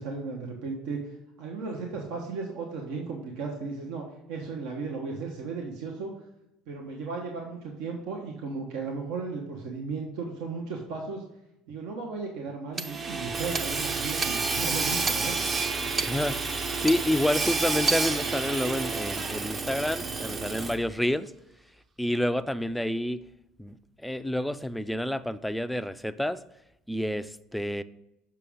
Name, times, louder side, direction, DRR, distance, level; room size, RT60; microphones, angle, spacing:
voice 1, 0.0-6.1 6.7-11.2 11.7-15.3, right 4 dB, 80° right, 0 dB, 1.1 m, -35 dB
Hammer / Sawing, 12.8-21.0, right 4 dB, 30° right, 0.7 m, -29 dB
voice 2, 15.9-16.4 16.8-21.3 22.0-23.2 23.6-23.8 24.0-26.4 26.9-27.8, left 1 dB, 5° left, 12 dB, 0.4 m, -29 dB
6.8 x 6.0 x 3.6 m, 0.85 s
supercardioid pair, 105°, 0 cm